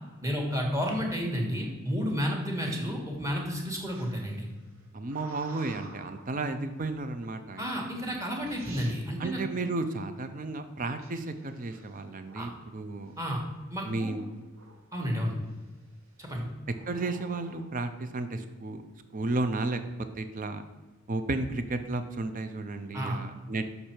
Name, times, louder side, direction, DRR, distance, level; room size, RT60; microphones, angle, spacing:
voice 1, 0.2-4.5 7.6-9.4 12.3-12.5 13.2-13.4 13.7-14.1 14.9-15.3 16.2-16.5 22.9-23.2, equal, 15° right, 0 dB, 1.3 m, -31 dB
sound 1, 3.9-6.4 7.2-7.6 8.2-8.3 8.4-9.0 11.0-12.6 13.1-13.5 13.8-15.0 15.5-15.9 16.7-17.7, right 3 dB, 80° right, 1.2 m, -52 dB
voice 2, 4.9-7.7 9.2-13.1 13.8-14.3 16.9-18.8 19.1-19.8 20.2-20.6 21.1-23.7, right 2 dB, 40° right, 9 dB, 0.5 m, -33 dB
6.7 x 5.5 x 4.4 m, 1.2 s
head